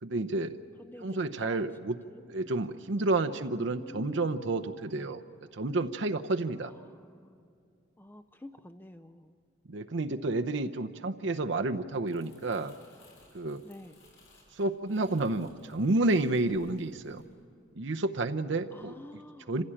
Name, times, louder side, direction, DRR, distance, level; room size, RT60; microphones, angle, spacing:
voice 1, 0.0-0.6 1.0-2.0 2.3-5.2 5.5-6.7 9.7-12.7 13.3-13.6 14.6-17.2 17.8-18.9 19.5-19.6, right 2 dB, 70° right, 6 dB, 0.8 m, -30 dB
voice 2, 0.8-2.3 3.3-4.3 4.9-5.2 6.6-7.5 8.0-9.4 13.6-14.0 18.7-19.5, left 1 dB, 10° left, 10 dB, 0.5 m, -49 dB
Crumpling crinkling, 11.9-18.2 18.5-18.8, left 2 dB, 90° left, 6.8 m, -62 dB
27.0 x 16.0 x 8.8 m, 2.4 s
head